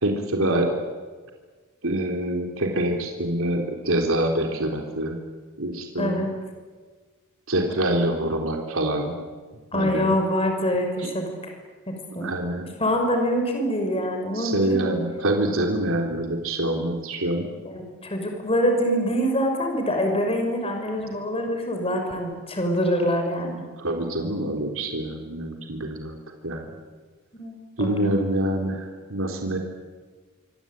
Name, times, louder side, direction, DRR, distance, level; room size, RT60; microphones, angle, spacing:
voice 1, 0.0-0.7 1.8-5.2 5.6-6.2 7.5-9.2 9.7-10.1 11.0-11.1 12.2-12.7 14.3-17.5 23.8-26.2 26.4-26.8 27.8-29.6, right 1 dB, 70° right, 2 dB, 3.9 m, -25 dB
voice 2, 6.0-6.3 9.7-11.5 11.9-12.3 12.8-15.0 17.6-23.6 27.3-28.1, equal, 25° left, 3 dB, 5.8 m, -25 dB
26.0 x 25.0 x 9.2 m, 1.4 s
head